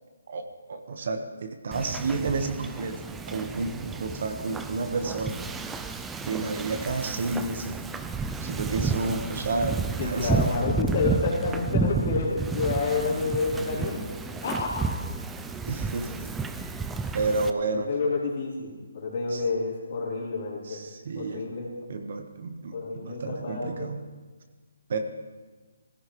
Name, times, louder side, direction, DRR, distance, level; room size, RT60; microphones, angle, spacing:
voice 1, 0.3-3.0 3.3-5.4 6.3-7.8 8.4-10.4 15.6-16.1 17.1-17.9 19.3-19.4 20.7-21.4 21.9-24.0 24.9-25.0, right 3 dB, 50° right, 6 dB, 1.3 m, -30 dB
Wind / Ocean, 1.7-17.5, right 4 dB, 5° right, 0.4 m, -31 dB
voice 2, 10.0-14.0 14.4-14.8 17.7-20.8 21.2-21.7 22.7-23.9, left 4 dB, 40° left, -4 dB, 3.5 m, -29 dB
17.5 x 16.0 x 3.2 m, 1.3 s
hypercardioid pair, 165°, 0 cm